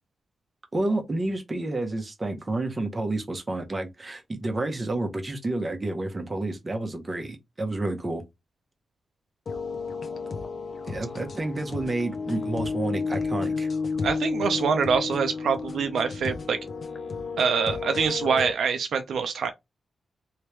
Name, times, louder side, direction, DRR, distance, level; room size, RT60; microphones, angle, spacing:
voice 1, 0.7-8.2 10.9-13.7, right 2 dB, 20° right, 0.8 m, -30 dB
sound 1, 9.5-18.5, left 4 dB, 45° left, 0.6 m, -32 dB
voice 2, 14.0-16.6 17.4-19.5, right 6 dB, 75° right, 0.5 m, -25 dB
3.1 x 2.8 x 3.3 m
wide cardioid pair, 170°, 0 cm